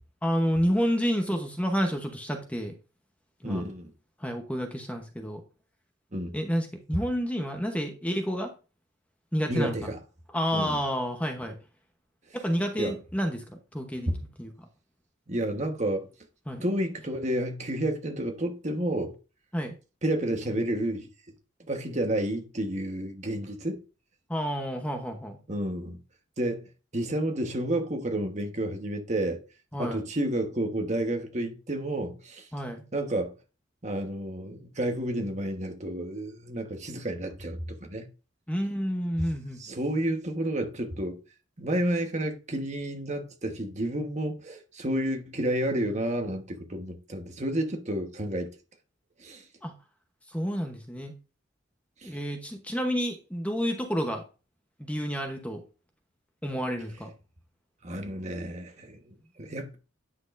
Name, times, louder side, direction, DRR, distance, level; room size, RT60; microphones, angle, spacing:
voice 1, 0.2-2.7 3.4-3.6 4.2-5.4 6.3-8.5 9.3-9.9 10.3-11.6 12.3-14.1 14.4-14.5 16.5-16.6 19.5-19.8 24.3-25.4 29.7-30.0 32.5-32.8 38.5-39.6 49.6-49.7 50.3-51.1 52.0-54.2 54.8-55.6 56.4-57.1, equal, 5° left, 0.9 m, -29 dB
voice 2, 3.4-3.9 6.1-6.3 9.5-10.0 10.5-10.8 12.8-12.9 15.3-16.1 16.6-19.1 20.0-21.1 21.7-23.8 25.5-26.0 26.4-26.6 26.9-29.4 29.8-32.5 32.9-33.3 33.8-38.1 39.6-41.2 41.6-48.5 49.2-49.4 52.0-52.2 57.8-59.8, right 1 dB, 35° right, 1.2 m, -30 dB
9.5 x 6.2 x 2.6 m
head